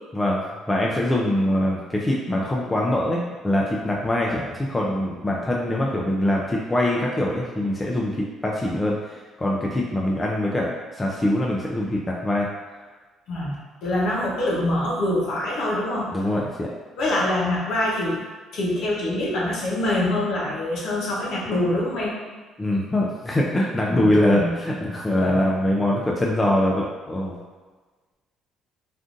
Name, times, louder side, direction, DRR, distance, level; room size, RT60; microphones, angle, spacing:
voice 1, 0.7-12.5 16.1-16.7 22.6-27.4, left 1 dB, 15° left, -3 dB, 0.3 m, -23 dB
voice 2, 13.8-16.1 17.0-18.2 18.5-22.1 23.9-24.5, left 1 dB, 60° left, -5 dB, 0.9 m, -24 dB
3.6 x 2.5 x 2.5 m, 1.4 s
cardioid pair, 150°, 0 cm